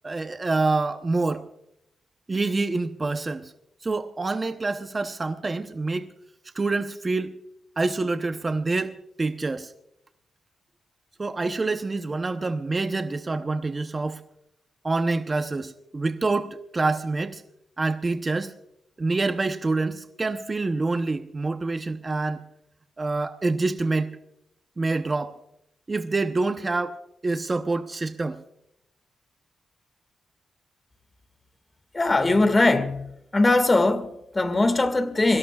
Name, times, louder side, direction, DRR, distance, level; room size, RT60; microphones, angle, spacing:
voice 1, 0.0-1.4 2.3-3.5 3.8-6.1 6.5-7.3 7.8-9.7 11.2-14.2 14.8-17.4 17.8-18.5 19.0-22.4 23.0-24.1 24.8-25.3 25.9-27.0 27.2-28.4, right 3 dB, 25° right, 0.8 m, -26 dB
voice 2, 31.9-33.0 33.3-35.4, left 2 dB, 25° left, 1.9 m, -21 dB
27.0 x 17.5 x 2.4 m
cardioid pair, 100°, 0 cm